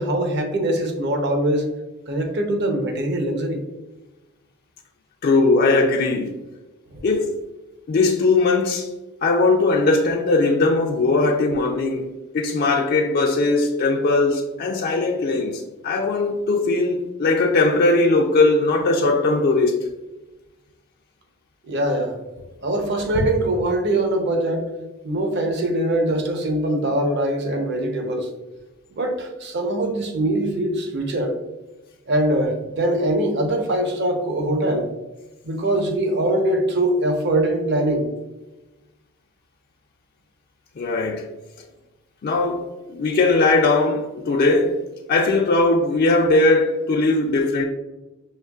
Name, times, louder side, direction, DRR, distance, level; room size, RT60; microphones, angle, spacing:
voice 1, 0.0-1.7 2.1-3.6 6.9-7.0 21.6-22.1 22.6-24.6 25.0-28.3 29.0-31.4 32.1-34.9 35.4-38.1, right 1 dB, 55° right, 0.7 m, -22 dB
voice 2, 5.2-6.4 7.0-7.3 7.9-8.9 9.2-19.9 40.8-41.3 42.2-44.8 45.1-47.6, left 3 dB, 50° left, 0.4 m, -19 dB
5.6 x 2.9 x 2.3 m
head